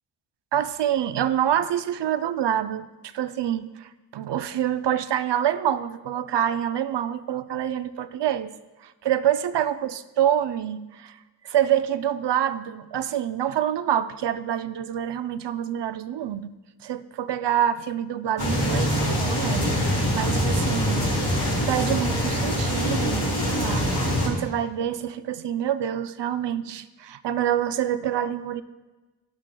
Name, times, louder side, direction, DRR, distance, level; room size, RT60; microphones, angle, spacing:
voice 1, 0.5-8.5 8.8-11.2 11.4-16.5 16.8-21.1 21.7-28.6, right 10 dB, 65° right, 13 dB, 0.6 m, -26 dB
sound 1, 18.4-24.3, equal, 65° left, 3.3 m, -24 dB
11.5 x 11.0 x 2.2 m, 1.2 s
cardioid pair, 50°, 45 cm